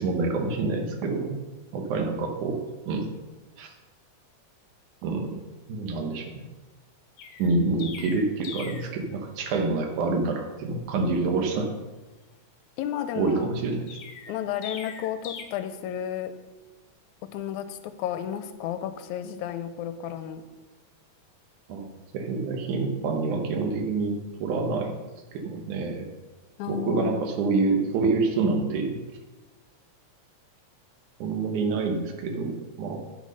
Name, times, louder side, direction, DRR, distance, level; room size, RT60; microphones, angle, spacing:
voice 1, 0.0-1.4 1.7-3.1 3.6-3.7 5.0-5.4 5.7-6.4 7.4-11.7 13.2-13.8 21.7-21.9 22.1-25.0 25.3-26.0 26.7-29.0 31.2-33.0, right 3 dB, 90° right, 4 dB, 2.6 m, -27 dB
Chirp tweet, 7.2-9.0 13.9-15.4, left 6 dB, 65° left, 1.4 m, -40 dB
voice 2, 12.8-13.5 14.3-16.3 17.3-20.4 26.6-27.3, left 10 dB, 85° left, 10 dB, 2.0 m, -32 dB
8.4 x 6.3 x 5.4 m, 1.2 s
omnidirectional pair, 3.4 m